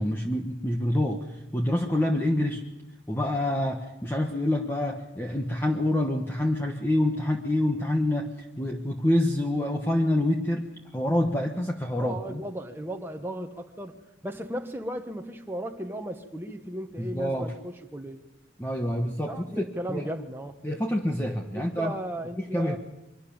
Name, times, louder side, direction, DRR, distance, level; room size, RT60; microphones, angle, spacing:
voice 1, 0.0-2.6 3.1-8.3 8.6-12.4 17.0-17.5 18.6-20.1 20.6-21.9 22.5-22.8, left 1 dB, 10° left, 2 dB, 1.2 m, -27 dB
voice 2, 11.9-14.0 14.2-18.2 19.3-20.6 21.5-22.8, right 1 dB, 10° right, 4 dB, 1.3 m, -35 dB
24.0 x 12.5 x 8.8 m, 0.97 s
head